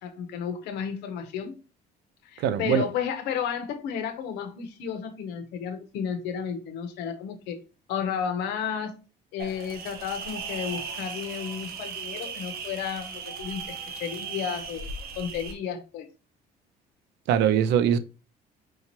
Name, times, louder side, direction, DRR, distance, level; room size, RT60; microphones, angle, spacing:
voice 1, 0.0-1.5 2.2-7.6 7.9-8.9 9.3-14.9 15.2-16.1, left 7 dB, 90° left, 0.7 m, -32 dB
voice 2, 2.4-2.9 17.3-18.0, right 9 dB, 80° right, 0.5 m, -22 dB
sound 1, 9.4-15.5, right 5 dB, 65° right, 0.9 m, -37 dB
4.6 x 2.9 x 2.9 m
cardioid pair, 110°, 17 cm